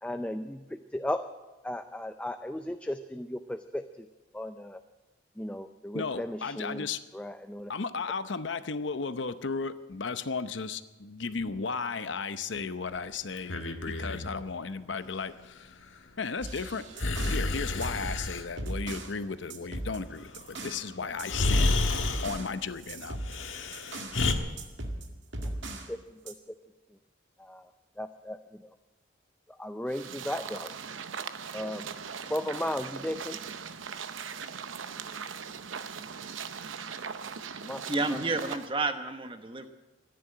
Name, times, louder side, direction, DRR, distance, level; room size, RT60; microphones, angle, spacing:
voice 1, 0.0-1.2 1.6-4.1 4.3-4.8 5.4-6.9 7.1-7.7 25.9-26.0 26.3-26.4 27.4-27.7 28.0-28.4 29.6-30.7 31.5-31.9 32.3-33.4 37.6-37.8, left 1 dB, 5° left, 8 dB, 0.4 m, -35 dB
voice 2, 5.9-7.0 7.7-15.7 16.2-16.8 17.3-21.8 22.2-23.2, left 4 dB, 70° left, 12 dB, 0.8 m, -35 dB
Breathing, 13.4-14.3 17.0-18.5 20.6-20.7 21.2-22.3 23.2-24.3, left 2 dB, 85° left, 1.4 m, -29 dB
sound 1, 16.4-17.5 17.8-19.2 19.5-20.9 21.2-24.2 24.6-25.9 26.3-26.4, right 1 dB, 70° right, 1.9 m, -39 dB
sound 2, 29.9-38.7, right 6 dB, 90° right, 0.8 m, -40 dB
voice 3, 37.9-39.7, right 3 dB, 25° right, 7 dB, 1.1 m, -30 dB
14.0 x 10.5 x 8.9 m, 1.2 s
head